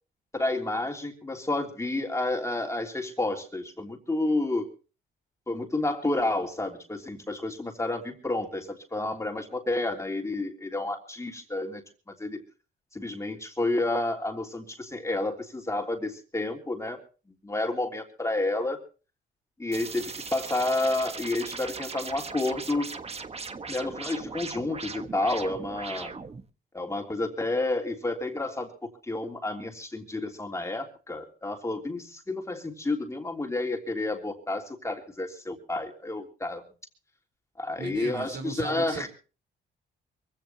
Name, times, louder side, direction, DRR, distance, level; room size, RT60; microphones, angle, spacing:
voice 1, 0.3-4.7 5.5-12.4 12.9-17.0 17.4-18.8 19.6-22.9 23.7-26.1 26.7-36.6 37.6-39.1, left 2 dB, 15° left, 2 dB, 3.3 m, -30 dB
sound 1, 19.7-26.5, right 4 dB, 30° right, 1.4 m, -39 dB
voice 2, 37.8-39.1, right 4 dB, 70° right, 7 dB, 4.0 m, -36 dB
24.0 x 16.0 x 3.0 m, 0.35 s
cardioid pair, 90°, 20 cm